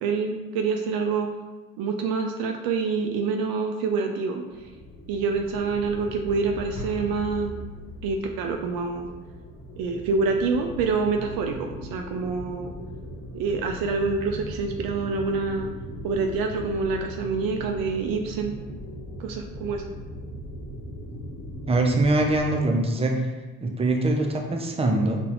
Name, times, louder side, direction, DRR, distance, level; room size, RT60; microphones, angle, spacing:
voice 1, 0.0-1.3 1.8-4.4 5.1-7.5 8.0-9.1 9.8-12.7 13.3-15.7 16.0-18.6 19.2-19.8, right 4 dB, 60° right, 4 dB, 0.5 m, -26 dB
sound 1, 4.5-22.5, equal, 30° left, 1.0 m, -39 dB
Explosion, 6.7-8.3, left 1 dB, 75° left, 1.3 m, -40 dB
voice 2, 21.7-23.2 23.6-25.2, right 2 dB, 15° right, 2 dB, 0.7 m, -23 dB
5.3 x 2.8 x 2.6 m, 1.2 s
figure-of-eight pair, 50°, 41 cm